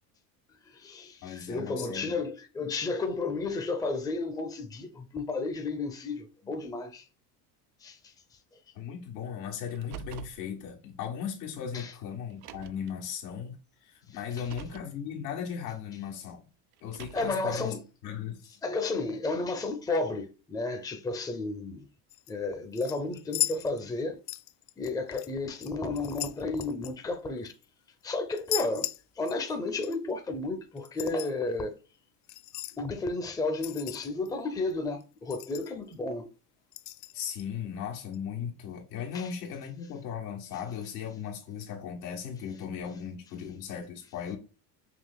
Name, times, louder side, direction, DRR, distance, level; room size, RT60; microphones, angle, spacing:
voice 1, 0.7-7.1 7.8-8.1 11.7-11.9 14.3-14.4 17.1-17.8 18.6-21.8 22.3-24.2 24.8-27.5 28.0-28.9 29.2-31.7 32.7-36.3 39.1-39.3, left 3 dB, 10° left, 0.6 m, -32 dB
voice 2, 1.2-2.2 8.7-13.6 13.8-16.4 16.8-17.8 18.0-18.6 37.1-44.4, left 8 dB, 90° left, 1.6 m, -37 dB
Car, 9.7-10.4 11.5-11.6 12.3-12.9 14.2-14.9 16.7-17.5, right 11 dB, 55° right, 0.6 m, -45 dB
sound 1, 22.1-22.3 22.8-24.0 24.3-25.3 25.6-27.6 28.3-29.6 29.8-30.0 30.8-31.3 32.3-32.8 33.6-34.3 34.7-34.8 35.0-35.1 35.3-35.9 36.7-37.4 38.1-38.2, left 17 dB, 65° left, 0.5 m, -36 dB
5.7 x 2.8 x 2.2 m
supercardioid pair, 110°, 47 cm